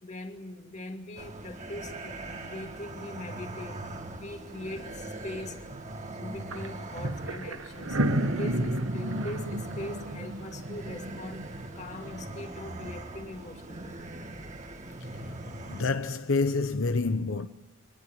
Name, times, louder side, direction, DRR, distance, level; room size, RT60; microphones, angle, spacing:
voice 1, 0.0-3.8 4.1-5.7 6.2-8.0 8.3-11.5 11.7-14.0, left 1 dB, 35° left, 2.4 m, -41 dB
sound 1, 1.2-15.8, right 2 dB, 35° right, 2.2 m, -41 dB
sound 2, 6.5-6.7 6.9-11.8, right 1 dB, 80° right, 1.9 m, -31 dB
voice 2, 15.7-17.5, left 3 dB, 80° left, 1.0 m, -27 dB
25.0 x 20.0 x 8.9 m
head